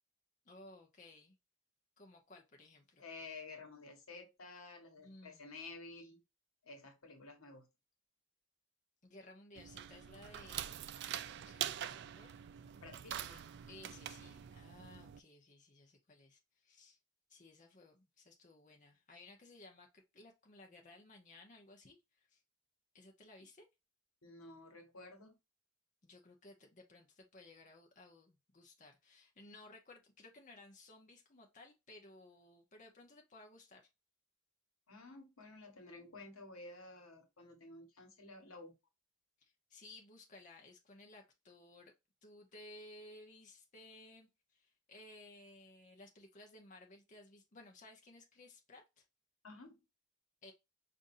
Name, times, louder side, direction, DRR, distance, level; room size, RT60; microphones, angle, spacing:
voice 1, 0.4-1.4 2.0-3.0 5.0-5.6 9.0-10.8 11.0-12.3 13.1-17.0 17.3-22.4 22.9-23.7 26.0-33.9 39.4-41.9 42.2-49.0 50.4-50.5, left 2 dB, 35° left, 0.8 m, -58 dB
voice 2, 3.0-6.2 6.6-7.7 12.8-13.2 24.2-25.4 34.9-38.8 49.4-49.8, left 3 dB, 85° left, 1.3 m, -52 dB
sound 1, 9.6-15.2, right 10 dB, 55° right, 0.3 m, -44 dB
5.2 x 2.6 x 2.6 m
head